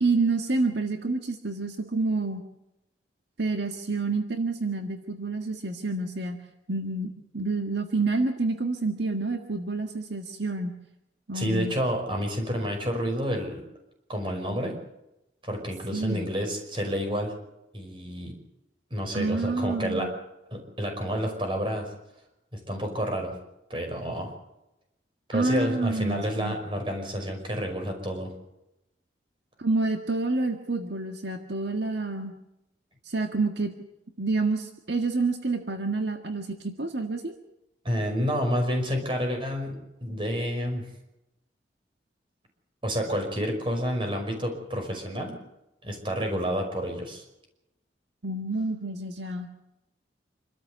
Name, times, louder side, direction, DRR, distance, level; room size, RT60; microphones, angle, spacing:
voice 1, 0.0-2.4 3.4-6.4 6.7-10.7 11.3-11.7 15.9-16.2 19.1-20.1 25.3-26.6 29.6-32.3 33.0-33.7 34.2-37.3 48.2-49.6, right 3 dB, 70° right, 4 dB, 1.7 m, -28 dB
voice 2, 11.3-13.6 14.1-14.8 15.4-17.3 17.7-18.3 18.9-20.1 20.5-21.9 22.5-23.3 23.7-24.3 25.3-28.3 37.8-40.8 42.8-45.4 45.8-47.2, equal, 30° right, 3 dB, 5.5 m, -29 dB
27.0 x 13.5 x 8.1 m, 0.91 s
head